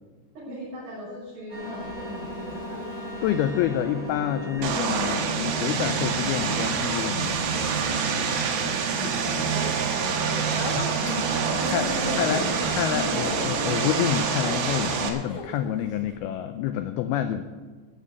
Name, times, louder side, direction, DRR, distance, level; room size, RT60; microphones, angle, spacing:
voice 1, 0.3-2.8 7.6-12.7 13.0-13.1, left 1 dB, 45° right, -10 dB, 7.0 m, -37 dB
sound 1, 1.5-14.2, equal, 20° left, 4.5 m, -37 dB
voice 2, 3.2-7.4 10.8-10.9 11.7-11.8 12.2-12.4 12.8-17.4, left 10 dB, 85° left, 9 dB, 2.2 m, -28 dB
Vehicle, 4.6-15.1, right 6 dB, 80° right, 3.6 m, -26 dB
Speech, 10.1-16.2, left 2 dB, 55° left, 1.8 m, -37 dB
13.5 x 7.5 x 8.5 m, 1.4 s
omnidirectional pair, 5.1 m